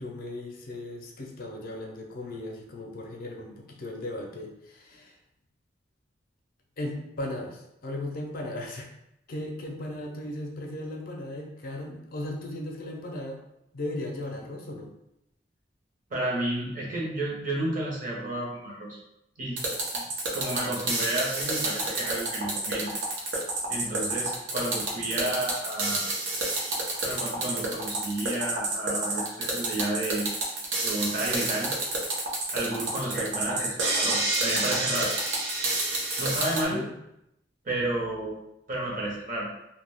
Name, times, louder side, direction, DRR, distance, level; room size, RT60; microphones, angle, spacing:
voice 1, 0.0-5.1 6.8-8.9 9.3-13.4 13.7-14.9 36.7-36.9, left 1 dB, 55° left, 1 dB, 0.5 m, -36 dB
voice 2, 16.1-19.0 19.4-19.6 19.9-20.0 20.3-22.9 23.7-26.1 27.0-30.3 30.8-31.7 32.5-35.1 36.2-36.8 37.6-38.4 38.7-39.5, right 1 dB, 45° right, -3 dB, 0.8 m, -31 dB
sound 1, 19.6-36.7, right 2 dB, 80° right, 0.6 m, -29 dB
2.3 x 2.1 x 3.3 m, 0.82 s
head